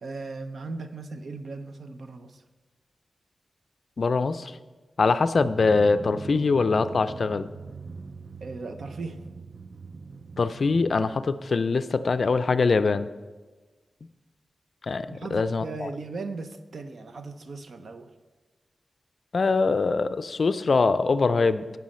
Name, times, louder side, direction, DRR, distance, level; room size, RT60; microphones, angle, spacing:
voice 1, 0.0-2.4 8.4-9.2 15.1-18.1, right 3 dB, 70° right, 8 dB, 0.7 m, -37 dB
voice 2, 4.0-4.5 5.0-7.5 10.4-13.1 14.8-15.9 19.3-21.6, left 4 dB, 55° left, 12 dB, 0.4 m, -23 dB
Drum, 5.4-11.8, right 4 dB, 40° right, 0.4 m, -42 dB
16.5 x 5.5 x 4.3 m, 1.3 s
wide cardioid pair, 140°, 0 cm